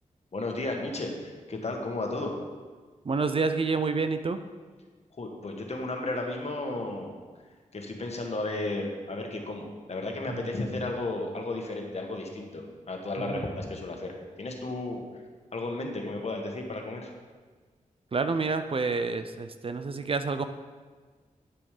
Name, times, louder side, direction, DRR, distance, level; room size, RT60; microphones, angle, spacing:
voice 1, 0.3-2.3 5.2-7.1 7.7-15.0 15.5-17.1, left 2 dB, 55° left, 2 dB, 1.5 m, -33 dB
voice 2, 3.0-4.4 10.3-10.4 13.2-13.4 18.1-20.4, right 4 dB, 45° right, 9 dB, 0.5 m, -28 dB
9.5 x 7.0 x 5.0 m, 1.5 s
wide cardioid pair, 95°, 13 cm